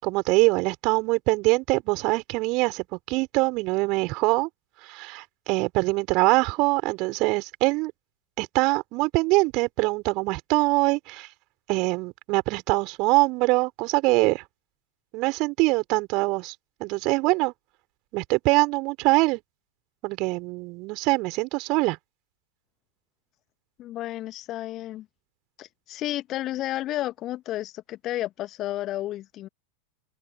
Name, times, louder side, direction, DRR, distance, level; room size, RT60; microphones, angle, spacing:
voice 1, 0.0-4.5 4.8-7.9 8.4-11.3 11.7-14.4 15.1-16.5 16.8-17.5 18.1-19.4 20.0-22.0, right 25 dB, 40° right, 4.9 m, -23 dB
voice 2, 23.8-25.1 25.6-29.5, left 14 dB, 35° left, 1.8 m, -32 dB
open air
figure-of-eight pair, 90°, 0 cm